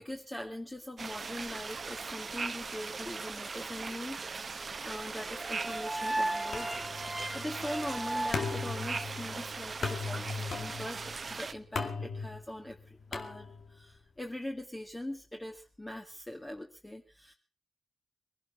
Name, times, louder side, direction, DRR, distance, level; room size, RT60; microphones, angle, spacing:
voice 1, 0.0-6.7 7.3-11.0 11.3-17.3, left 1 dB, 20° left, 2 dB, 2.1 m, -42 dB
sound 1, 1.0-11.5, right 4 dB, 55° right, 1.0 m, -39 dB
sound 2, 5.2-9.4, right 2 dB, 20° right, 2.1 m, -36 dB
sound 3, 6.5-13.9, left 4 dB, 75° left, 2.2 m, -39 dB
21.5 x 11.5 x 5.8 m, 0.38 s
cardioid pair, 50°, 0 cm